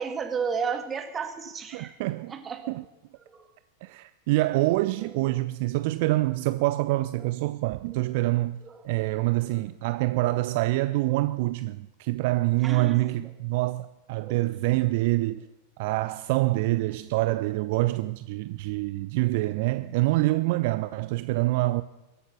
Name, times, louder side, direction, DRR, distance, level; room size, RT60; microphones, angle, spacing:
voice 1, 0.0-1.9 2.3-2.7 3.3-3.4 5.0-5.1 8.6-8.8 12.6-13.0 14.2-14.4, right 6 dB, 20° right, 1.8 m, -32 dB
voice 2, 1.7-2.4 2.7-2.8 3.8-8.6 8.8-15.5 15.8-21.8, right 19 dB, 50° right, 0.4 m, -26 dB
22.5 x 8.3 x 5.9 m
figure-of-eight pair, 90°, 0 cm